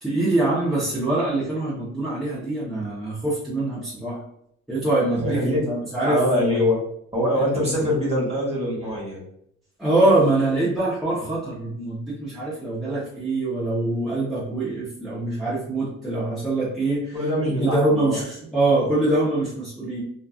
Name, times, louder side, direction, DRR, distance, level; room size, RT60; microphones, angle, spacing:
voice 1, 0.0-4.2 4.7-6.6 7.3-7.5 9.8-20.0, right 2 dB, ahead, -9 dB, 0.9 m, -24 dB
voice 2, 5.2-5.6 6.0-6.7 7.1-9.2 17.1-18.2, left 1 dB, 20° right, -5 dB, 1.4 m, -23 dB
2.9 x 2.4 x 2.4 m, 0.71 s
cardioid pair, 90°, 30 cm